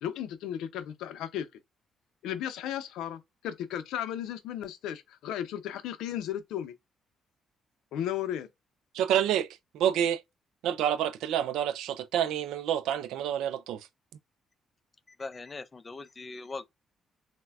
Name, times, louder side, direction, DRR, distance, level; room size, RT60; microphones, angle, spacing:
voice 1, 0.0-1.5 2.2-6.7 7.9-8.5, left 10 dB, 90° left, 0.5 m, -35 dB
voice 2, 8.9-9.5 9.7-10.2 10.6-13.8, right 10 dB, 90° right, 0.3 m, -28 dB
voice 3, 15.2-16.7, left 3 dB, 30° left, 0.4 m, -40 dB
4.0 x 2.1 x 2.3 m
cardioid pair, 90°, 0 cm